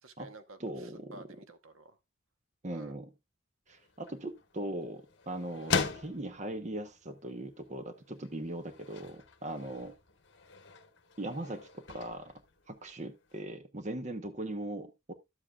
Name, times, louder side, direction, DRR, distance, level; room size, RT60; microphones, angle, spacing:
voice 1, 0.0-2.0 2.7-2.9, right 2 dB, 85° right, 1.0 m, -52 dB
voice 2, 0.6-1.2 2.6-3.1 3.7-9.9 11.2-12.3 12.7-15.1, right 1 dB, 35° right, 0.9 m, -39 dB
sound 1, 3.7-13.4, left 5 dB, 60° left, 1.1 m, -41 dB
13.0 x 7.7 x 2.3 m
head